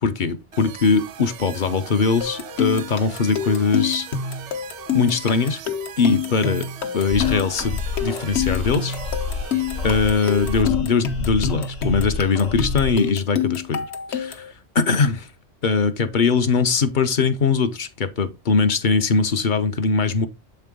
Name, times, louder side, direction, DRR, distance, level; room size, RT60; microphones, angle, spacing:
voice 1, 0.0-4.1 4.9-5.6 6.0-9.0 9.8-15.3 15.6-20.3, left 4 dB, 50° left, 0.7 m, -21 dB
sound 1, 0.5-10.6, right 9 dB, 80° right, 0.9 m, -39 dB
sound 2, 2.2-14.5, left 8 dB, 65° left, 1.1 m, -27 dB
sound 3, 7.1-13.1, left 4 dB, 85° left, 1.4 m, -29 dB
7.6 x 4.5 x 3.6 m
omnidirectional pair, 1.2 m